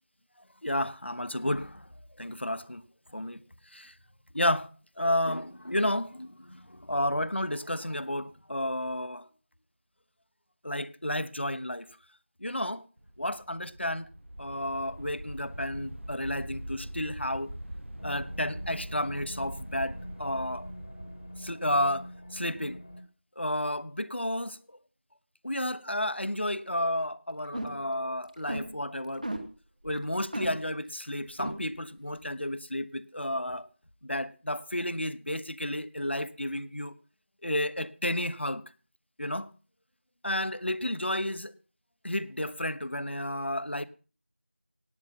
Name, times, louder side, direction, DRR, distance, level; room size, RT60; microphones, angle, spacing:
voice 1, 0.6-1.9 2.2-2.8 3.1-3.4 3.7-3.9 4.3-4.7 5.0-9.2 10.6-11.9 12.4-12.8 13.2-14.1 14.4-17.5 18.0-20.7 21.4-22.1 22.3-22.8 23.4-24.6 25.4-29.3 29.8-33.7 34.0-36.9 37.4-38.6 39.2-39.5 40.2-41.5 42.0-43.8, left 1 dB, 65° left, 1.1 m, -31 dB
sound 1, 13.0-23.0, right 1 dB, 75° right, 1.2 m, -43 dB
sound 2, 18.0-23.0, equal, 30° left, 1.5 m, -46 dB
sound 3, 27.5-27.9 28.2-28.7 29.2-29.4 29.8-30.0 30.3-30.5 31.0-31.1 31.4-31.5, right 1 dB, 40° right, 2.5 m, -33 dB
18.5 x 9.4 x 5.8 m
figure-of-eight pair, 175°, 7 cm